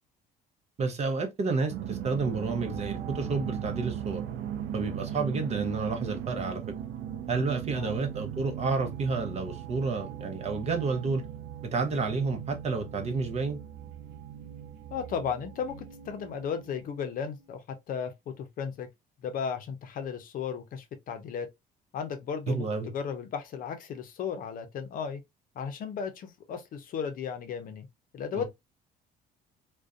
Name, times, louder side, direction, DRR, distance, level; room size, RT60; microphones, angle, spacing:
voice 1, 0.8-4.2 4.7-6.6 7.3-11.2 11.6-13.6 22.5-22.9 28.3-28.4, right 4 dB, 40° right, 0.7 m, -30 dB
sound 1, 1.7-17.1, right 10 dB, 80° right, 0.4 m, -38 dB
voice 2, 14.9-17.6 17.9-18.9 19.2-21.5 21.9-22.7 22.9-25.2 25.6-27.8 28.1-28.4, left 7 dB, 55° left, 0.6 m, -35 dB
2.5 x 2.2 x 2.3 m
cardioid pair, 110°, 17 cm